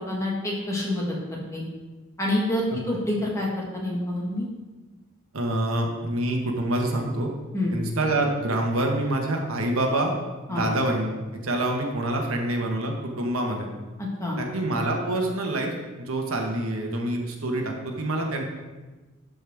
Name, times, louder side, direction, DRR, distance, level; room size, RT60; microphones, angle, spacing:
voice 1, 0.0-1.6 2.2-4.5 7.5-7.7 10.5-10.7 14.0-14.4, left 1 dB, 15° left, -3 dB, 1.6 m, -27 dB
voice 2, 5.3-7.3 7.7-10.1 10.5-11.2 11.4-13.7 14.4-15.7 16.0-18.4, right 1 dB, 80° right, 1 dB, 1.3 m, -26 dB
12.0 x 5.3 x 3.5 m, 1.2 s
head